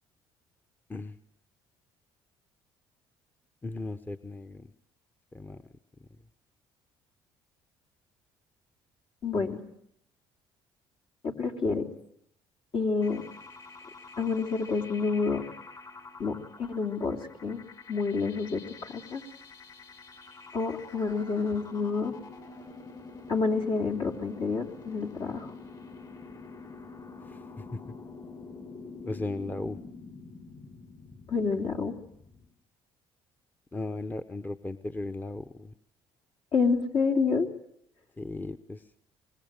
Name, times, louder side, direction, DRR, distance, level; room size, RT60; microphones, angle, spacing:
voice 1, 3.6-4.7 5.3-5.6 9.4-9.5 27.3-27.4 27.7-27.8 29.0-29.8 33.7-35.7 38.2-38.8, left 2 dB, 15° left, 9 dB, 1.0 m, -36 dB
voice 2, 9.2-9.6 11.2-11.9 12.7-13.2 14.2-15.4 16.2-17.6 17.9-19.2 20.5-22.1 23.3-25.5 31.3-31.9 36.5-37.5, left 4 dB, 55° left, 3 dB, 3.3 m, -28 dB
sound 1, 13.0-32.5, left 4 dB, 40° left, 6.9 m, -47 dB
25.0 x 21.0 x 9.1 m, 0.74 s
supercardioid pair, 75°, 11 cm